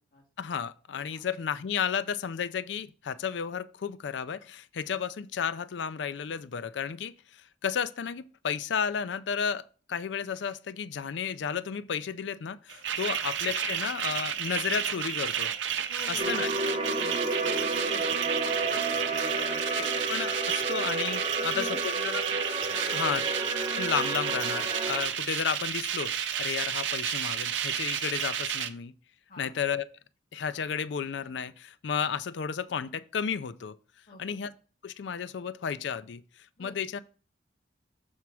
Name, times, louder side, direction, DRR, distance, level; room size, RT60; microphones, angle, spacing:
voice 1, 0.4-9.6 9.9-15.5 16.1-16.5 19.7-22.2 22.9-23.2 23.8-28.9 29.4-29.9 30.3-33.8 34.2-34.5 34.8-36.2 36.6-37.0, left 7 dB, 70° left, 0.4 m, -33 dB
sound 1, 12.7-28.7, right 9 dB, 90° right, 0.6 m, -32 dB
voice 2, 15.9-18.3 18.6-19.6 21.4-22.2 22.7-23.3 29.3-29.5 34.1-34.4 36.6-36.8, left 2 dB, 50° left, 1.9 m, -47 dB
sound 2, 16.2-25.0, right 2 dB, 35° right, 0.8 m, -31 dB
7.0 x 4.4 x 4.7 m
head